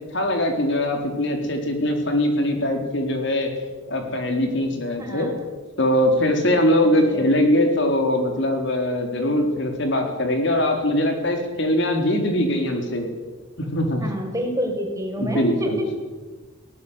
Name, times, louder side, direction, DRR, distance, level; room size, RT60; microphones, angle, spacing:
voice 1, 0.1-3.5 3.9-5.3 5.8-13.1 13.6-14.0 15.2-15.8, left 1 dB, 60° left, 4 dB, 4.1 m, -22 dB
voice 2, 14.0-15.9, equal, 15° right, 2 dB, 5.2 m, -27 dB
22.0 x 18.5 x 8.3 m, 1.3 s
head